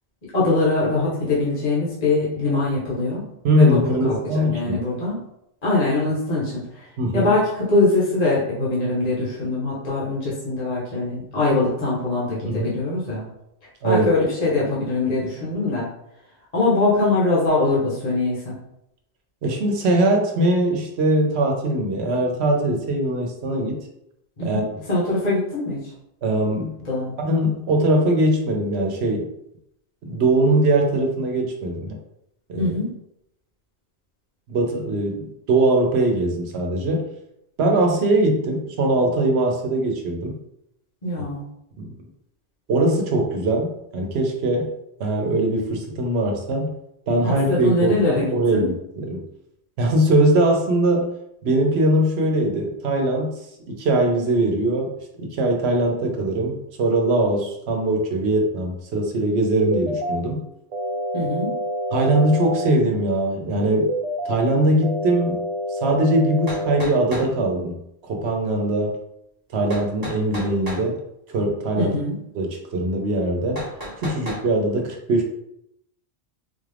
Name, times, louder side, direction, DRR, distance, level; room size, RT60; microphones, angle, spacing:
voice 1, 0.3-3.2 3.5-3.8 4.0-5.2 5.6-6.8 7.1-13.3 13.8-15.9 16.5-18.5 24.4-25.8 26.8-27.1 32.6-32.9 41.0-41.4 47.2-48.6 61.1-61.5 71.8-72.1, left 2 dB, 40° left, -7 dB, 1.2 m, -22 dB
voice 2, 3.4-4.8 7.0-7.3 12.4-12.8 13.8-14.1 19.4-23.8 24.4-24.7 26.2-26.8 27.2-29.3 30.0-32.0 32.5-32.8 34.5-37.1 37.6-40.4 41.8-41.9 42.7-44.7 45.0-46.7 47.1-49.2 49.8-51.1 51.4-53.3 53.7-54.9 55.2-60.4 61.9-63.9 64.2-65.4 65.7-67.8 68.1-69.0 69.5-71.0 71.3-72.0 72.3-73.6 74.0-75.3, right 1 dB, 80° right, 2 dB, 1.0 m, -21 dB
sound 1, 59.6-60.2 60.7-62.7 63.7-64.3 64.8-66.8, equal, 55° right, 0.4 m, -27 dB
sound 2, 66.5-67.3 69.7-70.8 73.5-74.4, equal, 20° right, 1.0 m, -33 dB
3.9 x 2.4 x 3.3 m, 0.79 s
omnidirectional pair, 1.1 m